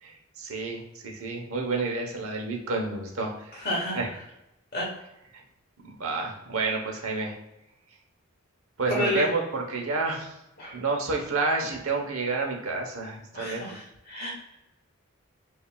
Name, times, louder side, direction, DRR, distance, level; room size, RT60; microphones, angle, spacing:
voice 1, 0.0-3.6 3.9-4.1 5.3-5.4 5.8-7.4 8.8-10.3 10.7-13.8, right 3 dB, 80° right, 1 dB, 1.0 m, -30 dB
voice 2, 3.5-4.0 4.7-4.9 8.9-9.3 10.6-10.8 13.3-14.3, left 1 dB, 45° left, -3 dB, 1.5 m, -30 dB
5.6 x 2.7 x 2.3 m, 0.88 s
head